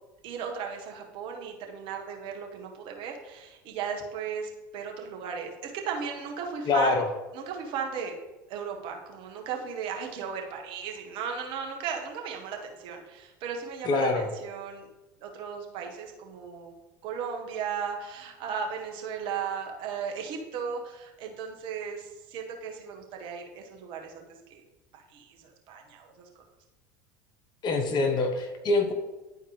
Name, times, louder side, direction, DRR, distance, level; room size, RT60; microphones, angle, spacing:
voice 1, 0.2-7.0 7.3-8.1 8.5-14.9 15.2-16.7 17.0-24.2 24.5-24.6 24.9-26.3 27.9-28.0, right 6 dB, 55° right, 2 dB, 1.4 m, -36 dB
voice 2, 6.7-7.1 13.8-14.3 27.6-28.9, left 3 dB, 45° left, 5 dB, 1.1 m, -25 dB
11.0 x 4.3 x 3.2 m, 1.1 s
hypercardioid pair, 75°, 10 cm